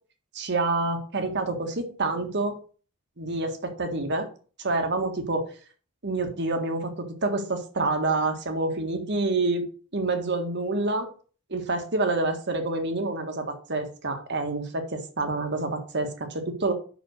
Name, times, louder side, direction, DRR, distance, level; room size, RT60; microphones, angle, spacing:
voice 1, 0.3-2.6 3.2-4.3 4.6-5.4 6.0-9.6 9.9-11.1 11.5-16.7, right 2 dB, 55° right, 5 dB, 1.6 m, -27 dB
5.9 x 5.1 x 6.4 m, 0.40 s
head